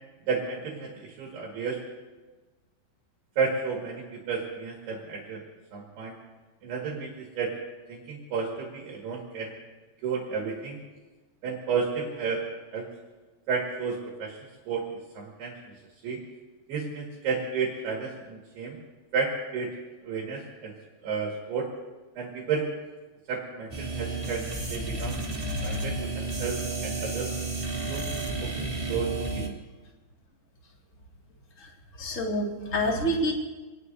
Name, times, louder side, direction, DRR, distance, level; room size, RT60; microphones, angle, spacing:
voice 1, 0.3-1.8 3.4-5.4 5.7-6.2 6.6-7.6 7.9-9.6 10.0-10.8 11.4-12.4 12.7-12.9 13.5-14.4 14.7-15.6 16.0-16.2 16.7-18.8 19.1-19.7 20.0-20.7 21.0-21.7 22.2-22.7 23.3-24.5 24.7-25.2 25.6-27.3 27.9-28.1 28.4-29.6, right 5 dB, 60° right, -2 dB, 3.6 m, -32 dB
sound 1, 23.7-29.5, right 2 dB, 15° right, 0.9 m, -32 dB
voice 2, 32.0-33.3, equal, 80° left, -2 dB, 0.7 m, -27 dB
26.5 x 19.5 x 2.8 m, 1.2 s
omnidirectional pair, 5.8 m